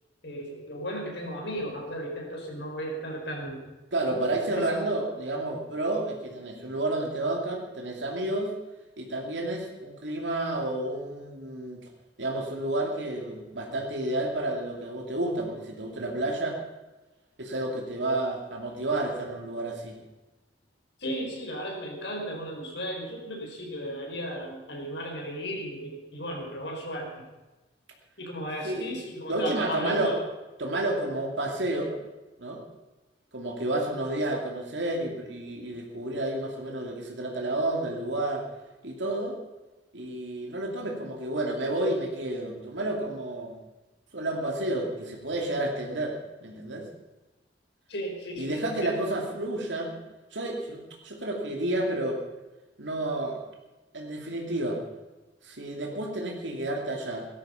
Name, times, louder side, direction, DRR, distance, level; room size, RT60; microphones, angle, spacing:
voice 1, 0.2-3.6 4.5-4.7 21.0-27.1 28.2-30.2 47.9-49.0, equal, 70° left, 0 dB, 5.0 m, -35 dB
voice 2, 3.9-8.5 9.0-11.8 12.2-16.6 17.4-20.0 28.6-28.9 29.3-30.2 30.6-31.9 32.4-32.6 33.3-38.5 38.8-39.4 39.9-43.6 44.1-46.9 48.4-50.0 50.3-52.2 52.8-53.4 53.9-54.8 55.4-57.3, right 1 dB, 85° right, 1 dB, 2.6 m, -30 dB
17.5 x 13.0 x 5.7 m, 1.1 s
head